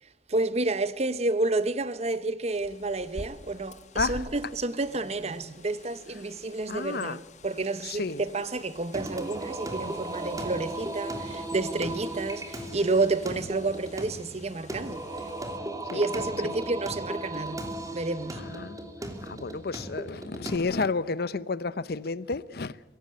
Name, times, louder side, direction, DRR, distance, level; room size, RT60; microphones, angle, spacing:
voice 1, 0.3-7.2 7.4-15.1 15.9-17.7 17.9-18.4, right 3 dB, 40° right, 0.9 m, -30 dB
Bird, 2.5-15.6, left 2 dB, 40° left, 1.3 m, -48 dB
voice 2, 6.7-7.2 7.8-8.2 15.9-16.0 16.4-16.6 18.3-18.8 19.2-22.8, left 4 dB, 60° left, 0.7 m, -31 dB
Singing, 8.9-20.6, right 1 dB, 20° right, 2.8 m, -36 dB
23.5 x 17.5 x 8.6 m
head